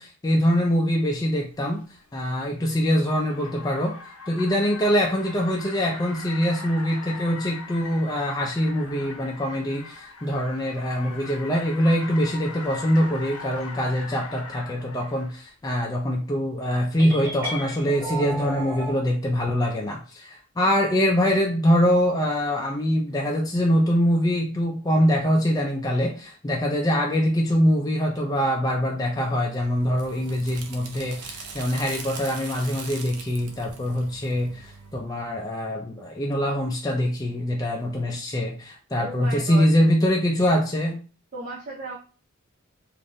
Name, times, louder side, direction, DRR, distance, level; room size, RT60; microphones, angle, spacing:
voice 1, 0.0-1.8 2.1-4.0 4.3-41.0, equal, 15° left, 0 dB, 0.3 m, -24 dB
Car, 1.5-15.4, left 4 dB, 85° left, 0.6 m, -41 dB
sound 1, 17.0-19.0, right 1 dB, 5° right, 1.5 m, -33 dB
sound 2, 29.5-35.0, right 4 dB, 90° right, 0.6 m, -41 dB
voice 2, 39.0-39.7 41.3-42.0, right 2 dB, 40° right, -2 dB, 0.5 m, -35 dB
3.4 x 2.5 x 2.5 m, 0.38 s
head